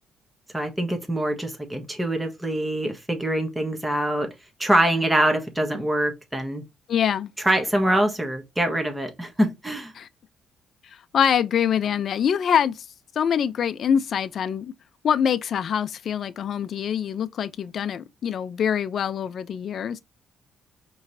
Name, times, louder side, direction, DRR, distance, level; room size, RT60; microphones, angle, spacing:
voice 1, 0.5-4.3 4.6-6.6 7.4-9.9, right 1 dB, 10° right, 1.3 m, -24 dB
voice 2, 6.9-7.3 9.9-10.1 11.1-12.7 13.2-14.7 15.0-20.0, left 8 dB, 60° left, 0.5 m, -24 dB
5.0 x 3.1 x 2.6 m
cardioid pair, 90°, 0 cm